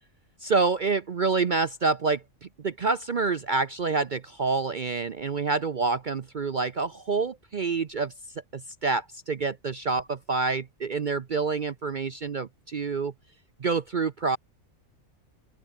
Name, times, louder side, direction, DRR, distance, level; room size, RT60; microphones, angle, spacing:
voice 1, 0.4-2.2 2.6-8.1 8.5-13.1 13.6-14.4, right 4 dB, 45° right, 0.7 m, -27 dB
open air
omnidirectional pair, 1.4 m